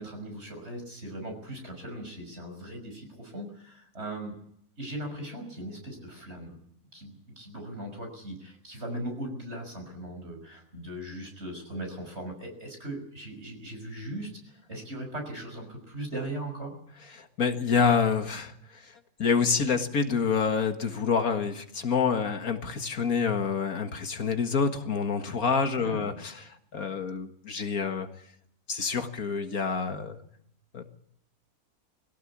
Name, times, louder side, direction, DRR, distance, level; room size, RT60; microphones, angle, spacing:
voice 1, 0.0-4.3 4.8-6.6 6.9-14.3 14.7-16.7 25.8-26.2, right 1 dB, 45° right, 3 dB, 6.1 m, -39 dB
voice 2, 17.1-28.1 28.7-30.2 30.7-30.8, left 5 dB, 70° left, 7 dB, 2.1 m, -27 dB
22.0 x 17.0 x 8.6 m, 0.69 s
omnidirectional pair, 1.6 m